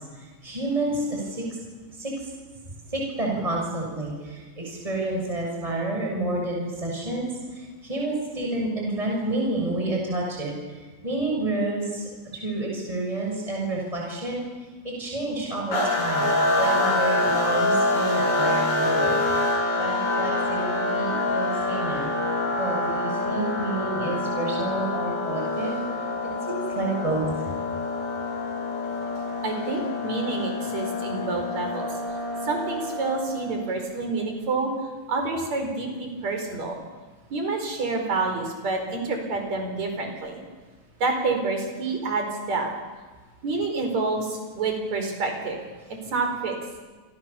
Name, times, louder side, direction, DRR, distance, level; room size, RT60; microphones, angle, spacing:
voice 1, 0.4-1.4 2.0-2.1 2.9-7.3 7.8-10.5 11.0-14.4 14.8-19.2 19.8-22.1 22.6-25.8 26.5-27.3, right 2 dB, 10° right, -1 dB, 6.7 m, -29 dB
sound 1, 15.7-33.6, left 2 dB, 70° left, 8.2 m, -26 dB
voice 2, 29.4-31.9 32.4-34.7 35.1-36.8 37.3-40.4 41.0-42.7 43.4-45.6 46.0-46.6, right 3 dB, 65° right, 4 dB, 6.0 m, -28 dB
28.5 x 26.5 x 7.1 m, 1.3 s
omnidirectional pair, 3.4 m